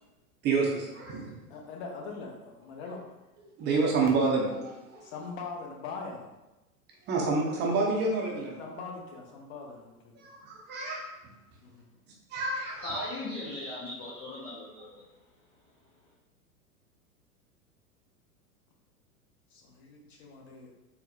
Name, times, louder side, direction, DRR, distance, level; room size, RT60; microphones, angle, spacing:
voice 1, 0.4-1.3 3.6-5.0 7.1-8.6 10.2-11.1 12.3-13.1, right 3 dB, 25° right, -1 dB, 0.6 m, -28 dB
voice 2, 1.5-3.0 5.0-6.4 8.6-10.2 11.6-11.9 19.5-20.7, left 4 dB, 45° left, 0 dB, 1.0 m, -42 dB
voice 3, 12.8-15.0, left 2 dB, 15° left, -8 dB, 0.3 m, -38 dB
4.3 x 2.1 x 4.0 m, 1.0 s
figure-of-eight pair, 100°, 45 cm